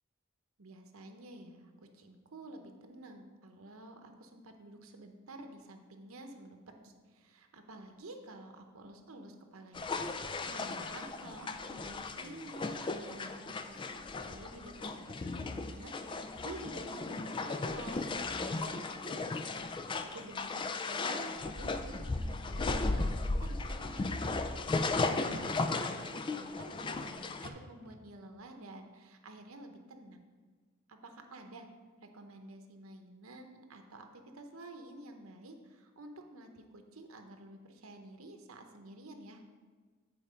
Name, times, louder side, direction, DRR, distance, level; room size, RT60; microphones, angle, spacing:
voice 1, 0.6-9.9 10.2-19.5 19.8-24.4 25.1-30.3 30.9-31.7 32.0-39.4, right 2 dB, 90° right, 5 dB, 0.8 m, -50 dB
sound 1, 9.7-27.5, left 3 dB, 25° left, 0.3 m, -36 dB
sound 2, 25.1-25.6 27.4-28.1 28.4-28.5, right 3 dB, 45° right, 0.5 m, -48 dB
8.8 x 4.4 x 5.1 m, 1.4 s
head